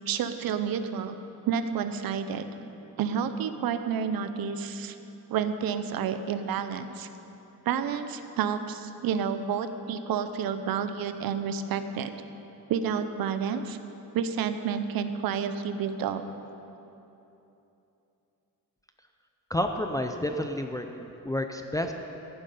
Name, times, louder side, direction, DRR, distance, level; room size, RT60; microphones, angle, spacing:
voice 1, 0.1-1.2 1.5-2.5 3.0-5.0 5.3-7.1 7.7-12.2 12.7-13.8 14.1-16.2, right 7 dB, 85° right, 10 dB, 0.8 m, -30 dB
voice 2, 19.5-21.9, left 1 dB, 10° left, 5 dB, 0.5 m, -30 dB
14.5 x 11.0 x 5.5 m, 3.0 s
cardioid pair, 150°, 34 cm